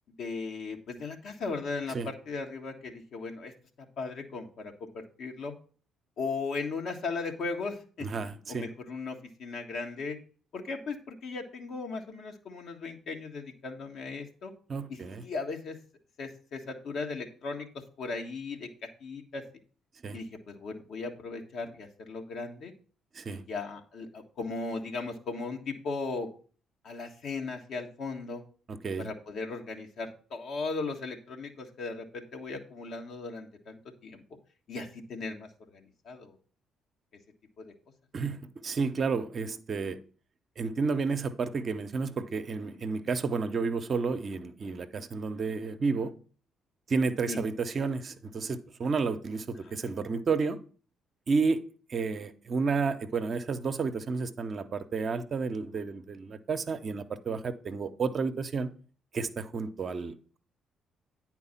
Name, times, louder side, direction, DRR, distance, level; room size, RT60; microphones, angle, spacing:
voice 1, 0.2-3.5 4.0-5.5 6.2-8.1 8.5-10.2 10.5-14.5 14.9-15.8 16.2-17.7 18.0-19.4 20.1-22.7 23.3-26.3 26.8-28.4 29.0-34.2 34.7-36.3 37.6-37.7 42.9-43.0 47.3-47.4, left 4 dB, 60° left, 1.5 m, -37 dB
voice 2, 8.0-8.7 14.7-15.2 20.0-20.2 23.1-23.4 28.7-29.1 38.1-40.0 40.6-46.1 46.9-50.6 51.3-51.6 51.9-58.7 59.1-60.4, right 4 dB, 45° right, 0.8 m, -31 dB
9.6 x 4.6 x 5.7 m
hypercardioid pair, 50°, 0 cm